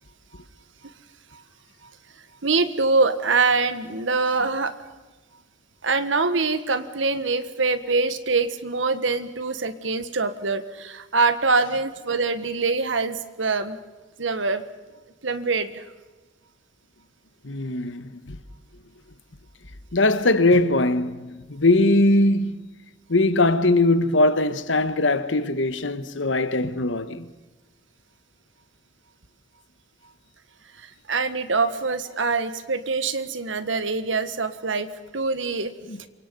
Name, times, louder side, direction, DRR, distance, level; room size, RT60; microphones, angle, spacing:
voice 1, 2.4-4.8 5.8-13.8 14.2-14.6 15.2-15.8 30.8-35.7, right 4 dB, 80° right, 1.5 m, -24 dB
voice 2, 17.4-18.4 19.9-22.6 23.1-27.3 35.9-36.0, left 2 dB, 75° left, 1.4 m, -21 dB
27.5 x 24.0 x 5.4 m
head